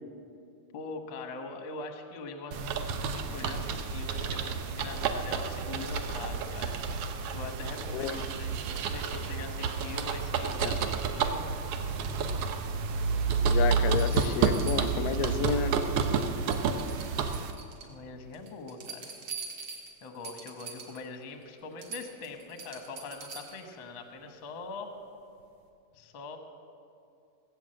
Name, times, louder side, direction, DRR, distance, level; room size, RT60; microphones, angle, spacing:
voice 1, 0.7-6.8 7.3-11.4 15.1-15.8 17.8-19.1 20.0-24.9 25.9-26.4, left 3 dB, 55° left, 5 dB, 1.5 m, -42 dB
sound 1, 2.5-17.5, right 5 dB, 85° right, 1.3 m, -30 dB
voice 2, 13.5-15.8, left 8 dB, 90° left, 12 dB, 2.3 m, -31 dB
sound 2, 13.9-15.6 15.9-16.2 16.5-17.9 18.3-21.1 21.4-21.5 21.8-23.7 25.4-25.5, right 5 dB, 50° right, 2.0 m, -44 dB
19.0 x 7.9 x 7.7 m, 2.5 s
omnidirectional pair, 3.8 m